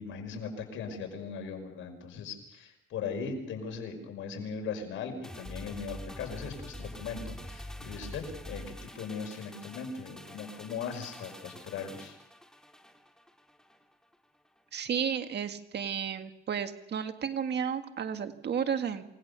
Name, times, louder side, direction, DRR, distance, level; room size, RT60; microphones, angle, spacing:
voice 1, 0.0-8.6 8.9-12.2, left 5 dB, 80° left, 4 dB, 5.5 m, -39 dB
sound 1, 5.2-13.8 14.1-14.2, left 1 dB, 5° left, 3.5 m, -45 dB
voice 2, 14.7-19.0, right 7 dB, 60° right, 7 dB, 1.8 m, -32 dB
28.0 x 19.0 x 6.9 m, 0.86 s
cardioid pair, 90°, 20 cm